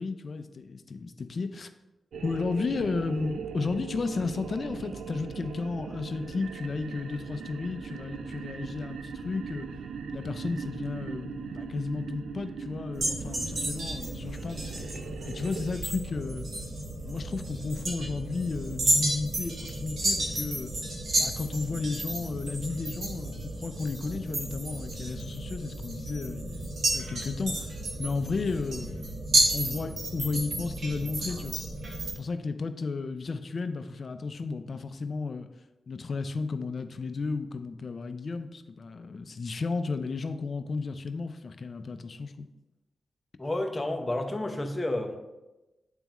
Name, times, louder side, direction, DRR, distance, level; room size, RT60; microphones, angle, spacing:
voice 1, 0.0-1.7 2.2-9.7 10.1-14.9 15.3-16.5 17.0-20.7 21.2-29.0 29.5-31.5 32.2-35.5 35.9-42.5, left 4 dB, 55° left, 10 dB, 0.5 m, -33 dB
sound 1, 2.1-15.7, right 5 dB, 85° right, 0.3 m, -40 dB
sound 2, 12.9-32.1, right 2 dB, 65° right, 1.6 m, -32 dB
voice 2, 43.4-45.2, left 1 dB, 20° left, 4 dB, 0.9 m, -30 dB
9.0 x 3.5 x 3.0 m, 1.0 s
cardioid pair, 55°, 0 cm